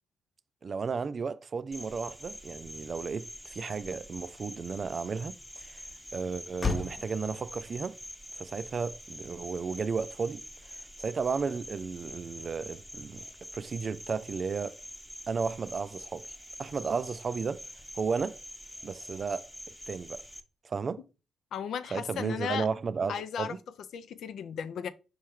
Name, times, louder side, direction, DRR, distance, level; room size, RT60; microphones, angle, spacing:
voice 1, 0.6-5.8 6.1-8.0 8.4-10.4 10.7-13.3 13.5-14.8 15.3-16.3 16.6-17.6 18.0-18.4 18.8-19.5 19.9-20.2 20.6-21.0 21.9-23.6, right 5 dB, 50° right, 0.3 m, -34 dB
Cricket, 1.7-20.4, left 1 dB, 5° left, 0.8 m, -46 dB
Motor vehicle (road), 3.3-11.2, left 4 dB, 40° left, 0.8 m, -41 dB
voice 2, 21.5-22.7 23.1-24.9, left 8 dB, 70° left, 0.4 m, -35 dB
4.5 x 3.1 x 3.5 m
hypercardioid pair, 45°, 0 cm